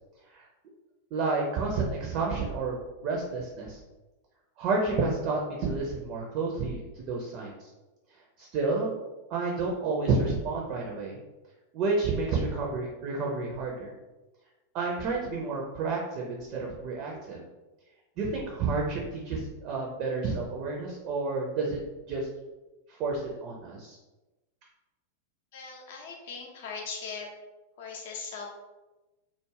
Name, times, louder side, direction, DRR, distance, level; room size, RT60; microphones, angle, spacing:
voice 1, 1.1-3.8 4.6-7.7 8.4-9.0 9.3-11.2 11.7-13.9 14.7-17.4 18.2-21.8 22.1-22.3 23.0-24.0, right 3 dB, 40° right, -1 dB, 0.4 m, -30 dB
voice 2, 25.5-27.3 27.8-28.6, left 5 dB, 55° left, 0 dB, 0.6 m, -39 dB
2.3 x 2.0 x 3.2 m, 1.1 s
figure-of-eight pair, 90°, 0 cm